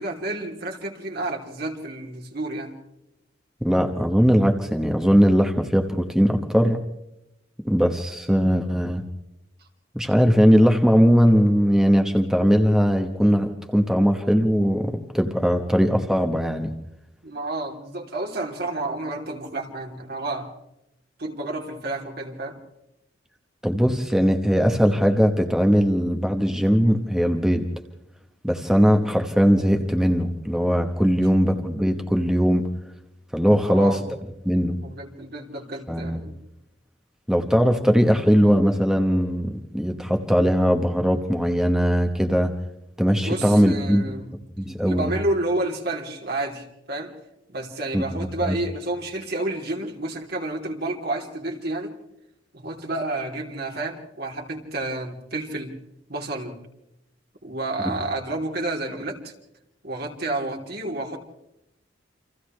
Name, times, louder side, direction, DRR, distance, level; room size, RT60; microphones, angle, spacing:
voice 1, 0.0-2.7 17.2-20.5 21.2-22.6 33.6-34.0 34.8-36.3 43.2-44.3 44.8-47.1 47.5-51.9 52.5-55.7 56.1-56.5 57.4-59.3 59.8-61.2, right 2 dB, 55° right, 1 dB, 3.4 m, -30 dB
voice 2, 3.6-6.8 7.6-9.0 9.9-16.7 23.6-27.6 28.4-32.7 33.3-34.0 34.4-34.7 35.9-36.2 37.3-42.5 43.0-44.0 44.6-45.1 47.9-48.6 57.8-58.0, equal, 5° right, 4 dB, 1.2 m, -20 dB
29.5 x 26.5 x 3.3 m, 0.87 s
head